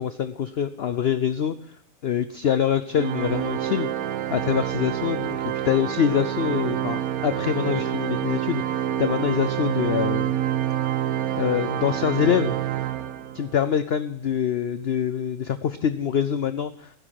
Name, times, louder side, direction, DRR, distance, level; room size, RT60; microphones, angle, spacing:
voice 1, 0.0-1.6 2.0-3.9 4.3-10.4 11.3-12.6 13.3-16.9, left 8 dB, 55° left, 12 dB, 0.7 m, -25 dB
Organ, 2.9-13.6, right 11 dB, 75° right, 1.2 m, -27 dB
16.0 x 10.0 x 5.8 m, 0.69 s
omnidirectional pair, 1.6 m